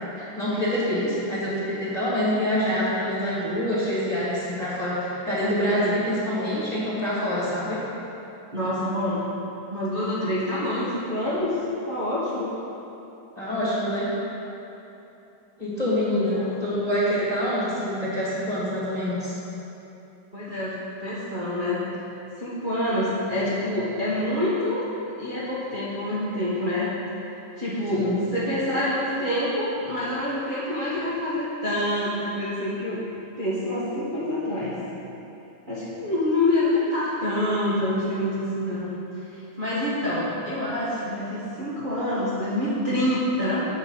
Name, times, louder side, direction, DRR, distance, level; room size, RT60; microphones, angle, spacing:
voice 1, 0.2-7.8 13.4-14.1 15.6-19.3 27.9-28.1, equal, 15° left, -9 dB, 2.1 m, -26 dB
voice 2, 8.5-9.3 9.7-11.5 11.8-12.5 16.3-16.6 20.3-20.7 21.0-21.8 22.4-24.8 25.2-26.9 27.6-33.0 33.4-34.8 35.7-38.9 39.3-43.6, left 1 dB, 25° right, -11 dB, 1.3 m, -26 dB
8.7 x 8.0 x 5.7 m, 2.9 s
omnidirectional pair, 3.3 m